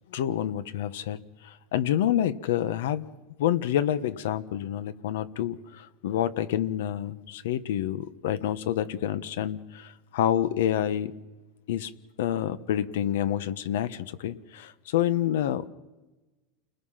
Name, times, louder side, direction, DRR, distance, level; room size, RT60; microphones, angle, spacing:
voice 1, 0.1-3.1 3.4-11.1 11.7-11.9 12.2-15.7, left 11 dB, 80° left, 14 dB, 1.3 m, -28 dB
29.5 x 21.0 x 5.9 m, 1.1 s
supercardioid pair, 165°, 0 cm